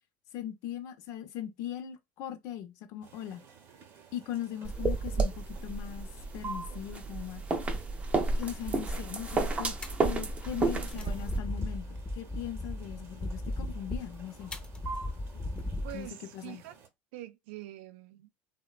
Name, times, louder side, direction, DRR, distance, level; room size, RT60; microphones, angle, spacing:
voice 1, 0.3-3.4 4.1-6.1 6.3-7.4 8.4-9.8 10.0-14.5 15.9-16.6, left 11 dB, 60° left, 0.6 m, -40 dB
sound 1, 3.0-16.9, right 4 dB, 45° right, 0.8 m, -50 dB
sound 2, 4.7-11.4, right 3 dB, 20° right, 0.5 m, -31 dB
sound 3, 8.2-16.1, left 1 dB, 15° left, 0.6 m, -39 dB
voice 2, 15.8-16.7 17.1-18.3, right 15 dB, 85° right, 0.4 m, -44 dB
3.0 x 2.1 x 2.3 m
supercardioid pair, 115°, 6 cm